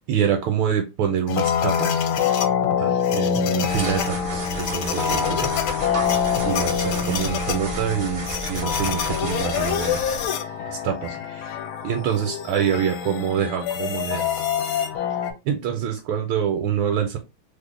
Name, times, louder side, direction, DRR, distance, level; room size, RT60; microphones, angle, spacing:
voice 1, 0.1-2.1 2.8-5.5 6.4-10.2 10.7-11.5 11.8-14.3 15.4-17.2, right 8 dB, 80° right, 4 dB, 1.3 m, -26 dB
sound 1, 1.3-15.3, left 8 dB, 80° left, 1.4 m, -25 dB
sound 2, 3.7-10.3, right 1 dB, 55° right, 0.5 m, -32 dB
3.3 x 2.1 x 3.6 m, 0.25 s
omnidirectional pair, 2.3 m